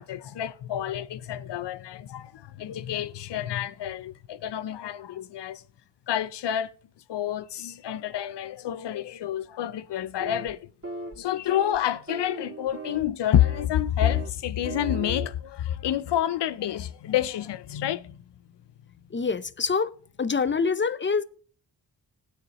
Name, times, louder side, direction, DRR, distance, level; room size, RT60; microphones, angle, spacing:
voice 1, 0.0-5.6 6.1-6.7 7.1-10.7 11.2-18.2, left 11 dB, 85° left, 0.6 m, -28 dB
sound 1, 10.2-10.5 10.8-11.2 11.5-11.8 12.1-13.0 13.4-13.7 14.0-14.3 14.6-15.3, right 2 dB, 35° right, 2.5 m, -37 dB
voice 2, 19.1-19.9 20.2-21.2, left 5 dB, 30° left, 0.7 m, -25 dB
19.0 x 6.6 x 3.0 m
cardioid pair, 55°, 41 cm